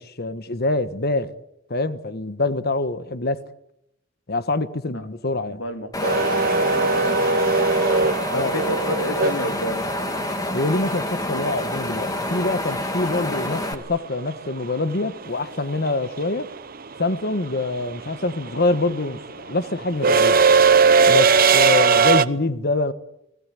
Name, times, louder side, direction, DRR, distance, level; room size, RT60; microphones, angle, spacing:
voice 1, 0.0-1.3 1.7-3.4 4.3-5.6 8.3-8.5 10.5-16.5 17.0-20.4 21.1-22.9, left 2 dB, 55° left, 1.4 m, -25 dB
voice 2, 5.3-7.5 8.3-9.8, left 1 dB, 85° left, 3.3 m, -31 dB
Wind, 5.9-13.7, left 1 dB, 20° left, 2.6 m, -27 dB
sound 1, 6.0-10.1 12.5-12.6 13.9-14.2 14.5-22.2, right 5 dB, 50° right, 1.0 m, -19 dB
29.5 x 21.0 x 8.5 m
head